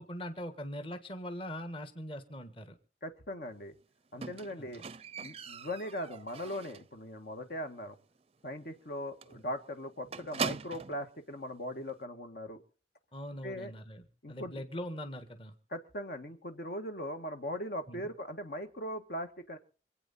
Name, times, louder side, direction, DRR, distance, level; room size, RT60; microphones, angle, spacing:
voice 1, 0.0-2.8 4.6-4.7 13.1-14.0 14.3-15.5 17.9-18.1, equal, 30° left, 9 dB, 1.5 m, -41 dB
voice 2, 3.0-3.7 4.1-4.8 5.2-8.0 8.4-12.6 13.4-13.7 14.2-14.6 15.7-19.6, equal, 60° left, 6 dB, 1.6 m, -39 dB
Squeak, 4.2-7.0 7.3-7.7 8.0-8.1 8.5-8.6 8.8-9.0 9.2-11.0 11.9-12.0, right 5 dB, 35° right, 0.6 m, -41 dB
26.5 x 8.8 x 4.2 m, 0.39 s
head